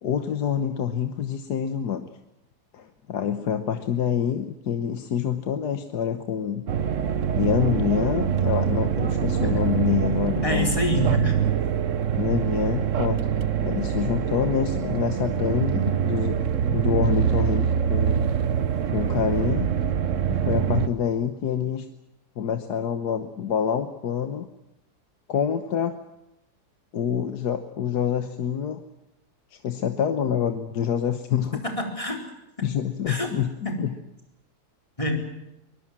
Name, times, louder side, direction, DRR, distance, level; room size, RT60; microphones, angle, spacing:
voice 1, 0.0-2.1 2.7-6.6 7.3-10.7 12.2-13.2 13.6-18.3 18.9-19.7 20.3-21.9 22.4-24.5 25.3-26.0 26.9-28.8 29.5-31.6 32.6-33.9, left 8 dB, 75° left, 8 dB, 1.7 m, -26 dB
sound 1, 6.7-20.9, right 8 dB, 55° right, 1.2 m, -24 dB
voice 2, 10.4-11.4 31.8-32.3 33.1-33.3 33.6-33.7 35.0-35.2, left 1 dB, 20° left, 2 dB, 4.4 m, -26 dB
24.0 x 21.0 x 7.5 m, 0.91 s
omnidirectional pair, 1.8 m